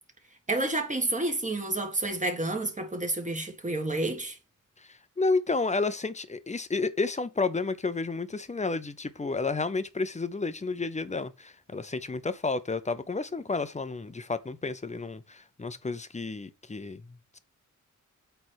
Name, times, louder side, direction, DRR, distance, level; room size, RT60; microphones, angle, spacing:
voice 1, 0.5-4.4, right 2 dB, 25° right, 1.6 m, -29 dB
voice 2, 4.8-17.4, left 3 dB, 20° left, 0.6 m, -31 dB
8.6 x 3.4 x 6.3 m
wide cardioid pair, 150°, 32 cm